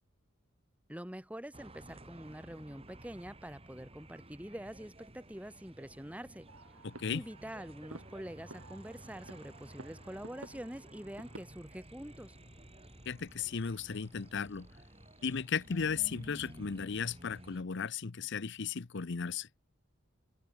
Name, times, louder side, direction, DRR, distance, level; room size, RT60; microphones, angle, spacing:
voice 1, 0.9-6.5 7.1-12.4, equal, 5° right, 2.6 m, -45 dB
sound 1, 1.5-17.6, right 1 dB, 30° right, 4.1 m, -54 dB
sound 2, 6.5-11.4, right 2 dB, 85° right, 5.9 m, -53 dB
voice 2, 6.8-7.2 13.1-14.7 15.2-19.5, left 6 dB, 60° left, 0.7 m, -35 dB
sound 3, 8.5-17.2, left 1 dB, 10° left, 3.4 m, -64 dB
open air
head